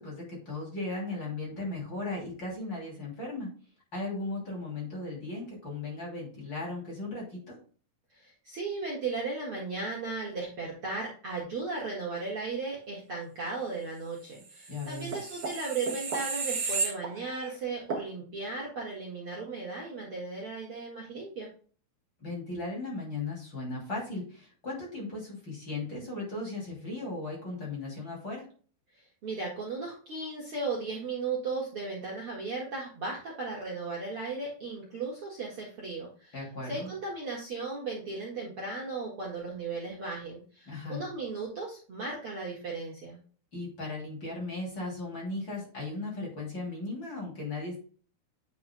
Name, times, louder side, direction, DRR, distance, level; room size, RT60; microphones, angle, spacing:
voice 1, 0.0-3.5 3.9-7.6 14.7-15.2 22.2-28.5 36.3-36.9 40.7-41.0 43.5-47.8, left 2 dB, 35° left, -3 dB, 3.2 m, -37 dB
voice 2, 8.1-21.5 29.2-36.3 36.6-43.2, right 3 dB, 45° right, -4 dB, 2.1 m, -36 dB
sound 1, 14.6-17.5 17.9-18.1, right 4 dB, 65° right, 1.0 m, -33 dB
9.0 x 5.8 x 2.2 m, 0.40 s
omnidirectional pair, 4.2 m